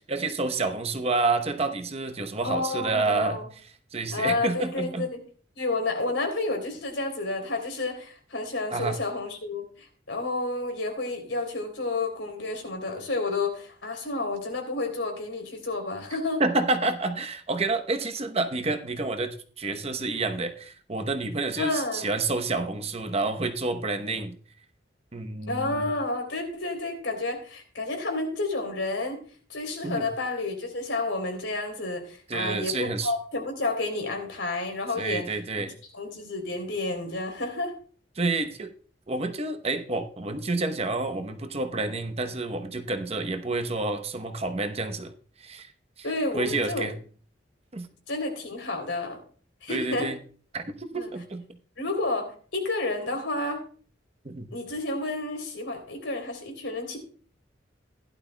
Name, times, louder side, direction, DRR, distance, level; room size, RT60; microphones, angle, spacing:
voice 1, 0.1-3.4 3.9-5.1 8.7-9.0 16.4-24.3 25.1-25.8 29.8-30.1 32.3-33.1 35.0-35.7 38.2-38.7 39.1-45.1 45.4-45.7 46.0-46.1 46.3-46.9 47.7-47.9 49.7-50.2 50.5-51.4 54.2-54.5, right 3 dB, 35° right, 7 dB, 0.9 m, -29 dB
voice 2, 2.4-3.4 4.1-5.2 5.5-16.4 21.6-22.1 25.5-29.2 29.5-35.3 35.9-37.7 46.0-46.9 48.1-49.2 49.6-50.1 50.9-51.1 51.8-53.6 54.5-57.0, left 2 dB, 85° left, 4 dB, 3.2 m, -30 dB
16.0 x 11.5 x 2.2 m, 0.43 s
head